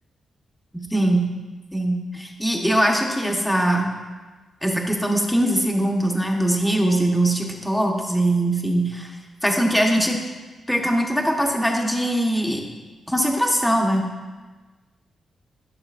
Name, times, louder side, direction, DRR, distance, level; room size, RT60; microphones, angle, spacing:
voice 1, 0.7-1.3 1.7-3.9 4.6-9.1 9.4-10.2 10.7-12.6 13.1-14.0, right 1 dB, 5° left, 1 dB, 1.1 m, -21 dB
12.0 x 6.5 x 2.5 m, 1.3 s
cardioid pair, 95°, 0 cm